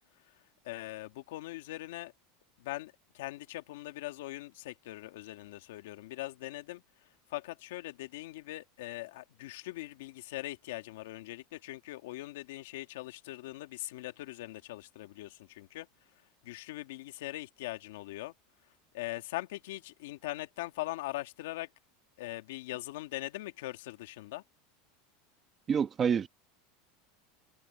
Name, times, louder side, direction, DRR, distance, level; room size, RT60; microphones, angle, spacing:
voice 1, 0.6-2.1 2.6-6.8 7.3-15.9 16.4-18.3 18.9-21.7 22.2-24.4, left 17 dB, 75° left, 2.1 m, -41 dB
voice 2, 25.7-26.3, right 7 dB, 20° right, 1.2 m, -27 dB
supercardioid pair, 170°, 0 cm